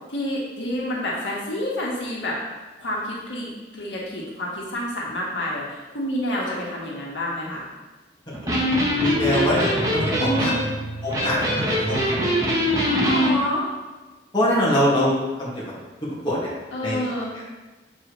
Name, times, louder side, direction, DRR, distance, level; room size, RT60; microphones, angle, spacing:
voice 1, 0.1-2.4 2.8-7.6 10.2-10.6 12.8-13.7 16.7-17.3, equal, 90° left, -4 dB, 1.4 m, -28 dB
Electric guitar, 8.3-13.3, equal, 20° right, 1.2 m, -23 dB
voice 2, 9.0-10.5 11.0-12.1 14.3-15.1 15.4-15.6 16.2-16.5 16.8-17.0, equal, 25° left, -7 dB, 1.8 m, -23 dB
7.4 x 4.8 x 3.1 m, 1.2 s
head